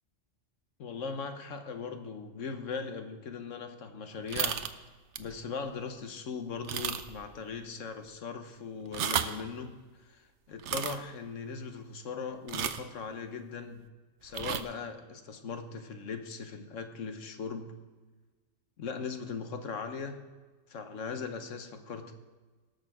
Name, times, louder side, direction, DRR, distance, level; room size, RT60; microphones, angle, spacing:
voice 1, 0.8-4.6 5.2-9.7 10.0-13.9 14.2-17.7 18.8-20.2 20.7-22.1, left 5 dB, 75° left, 7 dB, 1.3 m, -39 dB
sound 1, 4.3-4.7 5.1-5.3 5.8-5.9 6.6-7.3 7.5-7.6 8.8-9.4 10.6-11.0 12.5-12.9 14.3-14.6, right 9 dB, 65° right, 0.9 m, -33 dB
18.0 x 6.6 x 4.8 m, 1.3 s
omnidirectional pair, 1.3 m